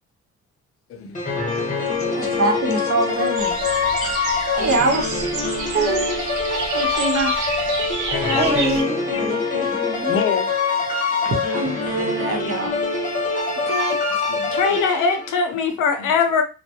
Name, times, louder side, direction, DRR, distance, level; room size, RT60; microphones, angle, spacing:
voice 1, 0.9-2.3 3.1-3.2 4.0-4.2 9.1-9.2 10.1-10.5 12.4-12.6 14.3-14.8 16.0-16.1, left 5 dB, 50° left, 0.5 m, -31 dB
sound 1, 1.1-15.5, left 4 dB, 25° left, 0.8 m, -24 dB
voice 2, 2.2-3.6 4.5-5.3 6.7-7.3 11.2-12.7, right 2 dB, 50° right, 0.9 m, -23 dB
sound 2, 3.4-8.8, right 4 dB, 80° right, 0.6 m, -30 dB
voice 3, 5.7-6.2 8.3-10.1 13.7-14.0, right 4 dB, 20° right, 0.7 m, -26 dB
voice 4, 8.1-8.7 14.5-16.4, left 5 dB, 85° left, 0.7 m, -21 dB
2.2 x 2.2 x 2.7 m
cardioid pair, 90°, 30 cm